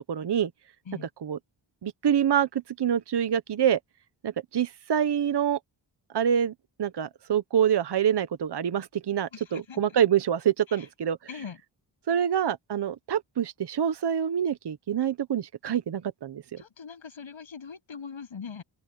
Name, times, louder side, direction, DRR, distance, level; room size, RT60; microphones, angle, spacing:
voice 1, 0.1-0.5 1.0-1.4 1.8-3.8 4.2-5.6 6.1-6.5 6.8-11.2 12.1-16.6, right 9 dB, 60° right, 1.0 m, -26 dB
voice 2, 9.3-9.8 10.7-10.9 11.3-11.6 16.6-18.6, left 6 dB, 75° left, 7.9 m, -41 dB
open air
wide cardioid pair, 100°, 47 cm